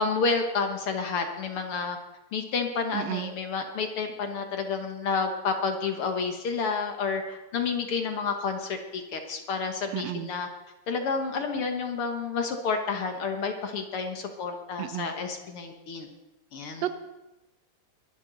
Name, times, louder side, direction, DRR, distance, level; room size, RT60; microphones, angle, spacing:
voice 1, 0.0-2.0 2.3-10.5 10.9-16.1 16.5-16.8, left 5 dB, 55° left, 5 dB, 1.8 m, -30 dB
voice 2, 2.9-3.3 9.9-10.3 14.8-15.1 16.8-16.9, right 12 dB, 75° right, 10 dB, 1.8 m, -31 dB
22.5 x 11.5 x 3.9 m, 1.0 s
omnidirectional pair, 3.3 m